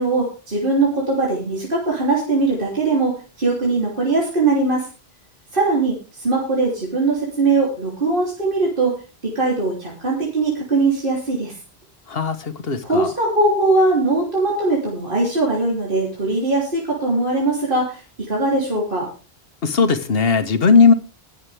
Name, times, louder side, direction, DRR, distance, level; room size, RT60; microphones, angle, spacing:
voice 1, 0.0-4.9 5.5-9.0 9.2-11.5 12.8-19.1, right 3 dB, 55° right, -3 dB, 3.5 m, -20 dB
voice 2, 12.1-13.1 19.6-20.9, left 5 dB, 65° left, 10 dB, 1.5 m, -17 dB
20.5 x 7.5 x 3.5 m, 0.35 s
omnidirectional pair, 1.1 m